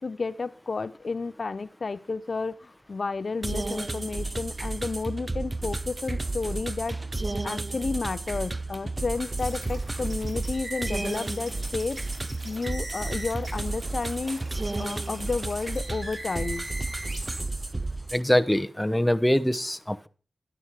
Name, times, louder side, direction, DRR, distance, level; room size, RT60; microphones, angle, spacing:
voice 1, 0.0-7.0 7.4-12.0 12.4-14.5 14.8-16.7, left 4 dB, 60° left, 0.4 m, -31 dB
sound 1, 3.4-18.2, right 2 dB, 30° right, 0.5 m, -32 dB
sound 2, 9.4-17.4, right 1 dB, 55° right, 3.9 m, -41 dB
voice 2, 18.1-20.1, left 1 dB, 10° left, 0.8 m, -23 dB
11.0 x 9.7 x 4.6 m
cardioid pair, 55°, 0 cm